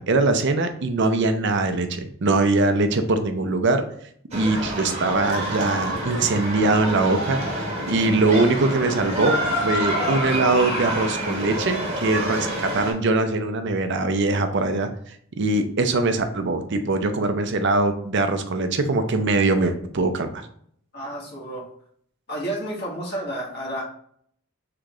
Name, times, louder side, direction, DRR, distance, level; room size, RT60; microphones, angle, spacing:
voice 1, 0.0-3.8 4.3-14.9 15.4-20.4, right 3 dB, 55° right, 8 dB, 0.6 m, -22 dB
sound 1, 4.3-12.9, equal, 30° right, 1.2 m, -27 dB
voice 2, 20.9-21.7 22.3-23.8, right 1 dB, 50° left, -3 dB, 1.5 m, -31 dB
3.8 x 3.4 x 3.6 m, 0.63 s
head